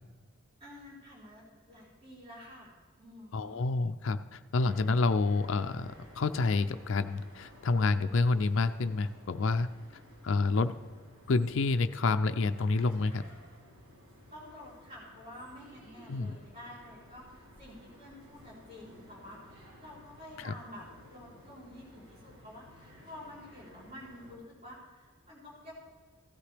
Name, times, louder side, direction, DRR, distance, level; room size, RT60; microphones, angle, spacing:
voice 1, 0.6-1.4 1.7-2.7 3.0-3.6 14.3-25.7, left 1 dB, 30° right, -7 dB, 3.9 m, -49 dB
voice 2, 3.3-9.7 10.2-10.7 11.3-13.2 16.1-16.3 20.4-20.5, left 3 dB, 65° left, 9 dB, 0.4 m, -28 dB
sound 1, 4.6-24.3, equal, 85° right, 3.8 m, -55 dB
15.5 x 13.0 x 3.4 m, 1.5 s
head